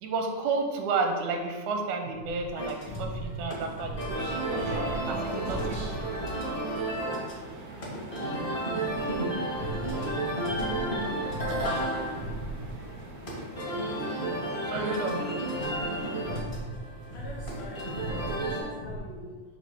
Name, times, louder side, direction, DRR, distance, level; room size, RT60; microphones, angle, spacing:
voice 1, 0.0-4.4 5.1-5.9 14.6-15.4, right 4 dB, 85° right, 4 dB, 2.0 m, -31 dB
sound 1, 2.1-6.3 8.8-12.9 15.5-19.0, right 1 dB, 90° left, 1.1 m, -39 dB
sound 2, 2.5-18.6, right 1 dB, 55° left, 0.5 m, -33 dB
sound 3, 4.1-16.4, right 1 dB, 65° right, 0.8 m, -42 dB
voice 2, 17.1-19.4, left 1 dB, 70° left, -3 dB, 1.3 m, -44 dB
5.8 x 2.9 x 5.6 m, 1.4 s
omnidirectional pair, 3.5 m